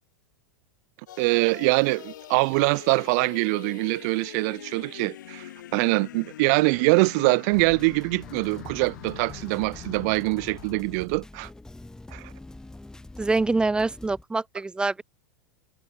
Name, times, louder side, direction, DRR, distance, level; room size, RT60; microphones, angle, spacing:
sound 1, 1.1-10.8, left 12 dB, 80° left, 1.0 m, -43 dB
voice 1, 1.2-11.5 12.1-12.3, right 31 dB, 55° right, 0.4 m, -24 dB
sound 2, 7.5-14.2, left 2 dB, 5° left, 4.2 m, -45 dB
voice 2, 13.2-15.0, right 3 dB, 10° right, 0.8 m, -25 dB
hypercardioid pair, 110°, 10 cm